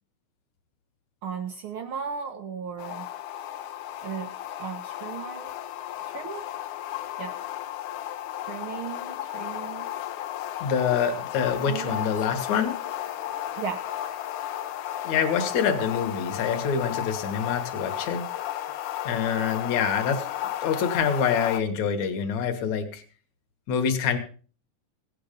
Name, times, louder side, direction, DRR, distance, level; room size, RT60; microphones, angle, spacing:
voice 1, 1.2-3.1 4.0-4.3 4.6-5.5 6.0-6.5 7.2-7.4 8.5-9.9 11.7-12.3 13.6-13.9, right 7 dB, 75° right, 8 dB, 1.2 m, -36 dB
sound 1, 2.8-21.6, left 12 dB, 90° left, 2.3 m, -34 dB
voice 2, 10.6-12.8 15.0-18.2 19.0-20.2 20.6-23.0 23.7-24.2, left 7 dB, 65° left, 7 dB, 2.6 m, -26 dB
16.5 x 8.8 x 5.2 m, 0.41 s
omnidirectional pair, 3.5 m